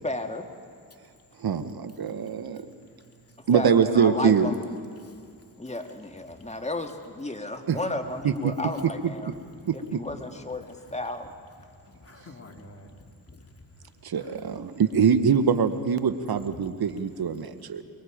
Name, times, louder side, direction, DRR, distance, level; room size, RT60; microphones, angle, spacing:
voice 1, 0.0-0.5 3.5-4.6 5.6-9.3 9.7-11.3, left 2 dB, 15° left, 5 dB, 2.0 m, -33 dB
voice 2, 1.4-2.6 3.5-4.5 7.7-7.8 8.2-8.5 9.7-9.8 14.0-17.8, right 6 dB, 55° right, 11 dB, 1.3 m, -23 dB
voice 3, 11.8-13.0 13.3-13.4 14.1-14.4 16.3-16.6, left 2 dB, 35° left, 2 dB, 2.7 m, -48 dB
24.5 x 21.5 x 5.1 m, 2.3 s
cardioid pair, 55°, 43 cm